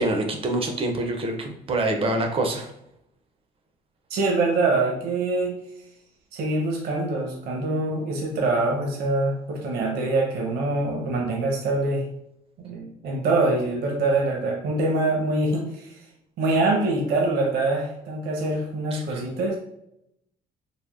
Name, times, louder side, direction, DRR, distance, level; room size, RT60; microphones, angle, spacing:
voice 1, 0.0-2.7 18.9-19.2, right 2 dB, 35° right, 4 dB, 0.4 m, -26 dB
voice 2, 4.1-5.6 6.3-12.0 12.6-15.9 16.4-19.6, right 2 dB, 70° right, -1 dB, 0.7 m, -24 dB
3.4 x 2.0 x 2.3 m, 0.78 s
cardioid pair, 110°, 17 cm